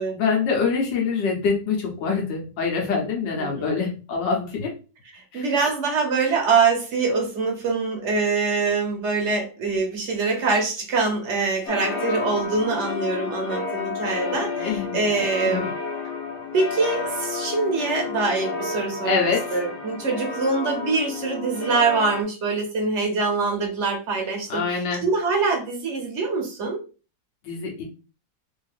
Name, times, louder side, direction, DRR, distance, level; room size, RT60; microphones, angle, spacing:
voice 1, 0.1-4.7 5.3-5.4 14.5-15.0 15.4-15.7 19.0-19.6 24.5-25.0 27.4-27.8, left 5 dB, 85° left, 1.7 m, -25 dB
voice 2, 3.4-3.8 5.1-15.7 16.5-26.8, right 4 dB, 50° right, 1.1 m, -24 dB
sound 1, 11.7-22.2, left 4 dB, 50° left, 0.9 m, -31 dB
3.6 x 2.7 x 3.4 m
omnidirectional pair, 1.9 m